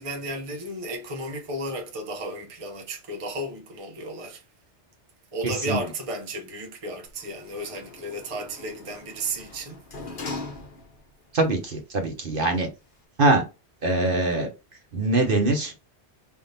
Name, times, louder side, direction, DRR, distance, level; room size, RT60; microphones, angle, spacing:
voice 1, 0.0-4.4 5.3-9.8, right 1 dB, 30° right, 0.9 m, -33 dB
voice 2, 5.4-5.9 11.3-12.7 13.2-13.4 13.8-14.5 14.9-15.7, right 2 dB, 50° right, 1.1 m, -23 dB
Sliding door, 7.0-11.2 11.6-11.7, left 3 dB, 50° left, 1.1 m, -40 dB
4.5 x 3.7 x 2.8 m
omnidirectional pair, 1.2 m